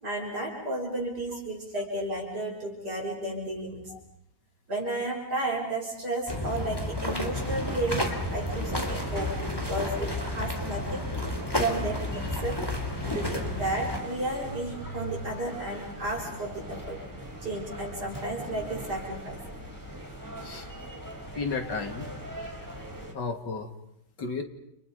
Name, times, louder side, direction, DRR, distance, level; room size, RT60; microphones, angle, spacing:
voice 1, 0.0-3.9 4.7-12.6 13.0-17.0 17.4-19.4, right 2 dB, 55° right, -2 dB, 6.7 m, -33 dB
sound 1, 6.3-14.0, left 1 dB, 10° left, 3.6 m, -31 dB
sound 2, 7.3-23.1, right 1 dB, 10° right, 3.8 m, -41 dB
voice 2, 21.3-22.1 23.1-23.7 24.2-24.4, left 4 dB, 65° left, 5 dB, 3.0 m, -33 dB
30.0 x 29.0 x 5.3 m, 0.80 s
omnidirectional pair, 2.1 m